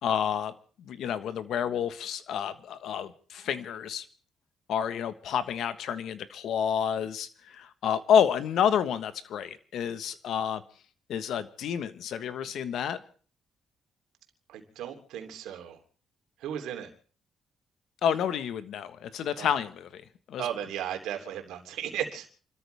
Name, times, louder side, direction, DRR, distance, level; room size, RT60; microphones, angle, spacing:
voice 1, 0.0-0.5 0.8-4.0 4.7-10.6 11.1-13.0 18.0-20.0 20.3-20.4, left 8 dB, 75° left, 12 dB, 1.3 m, -29 dB
voice 2, 14.5-15.8 16.4-16.9 19.4-19.5 20.4-22.3, right 10 dB, 90° right, 4 dB, 3.1 m, -35 dB
28.5 x 13.5 x 3.5 m, 0.41 s
cardioid pair, 90°, 0 cm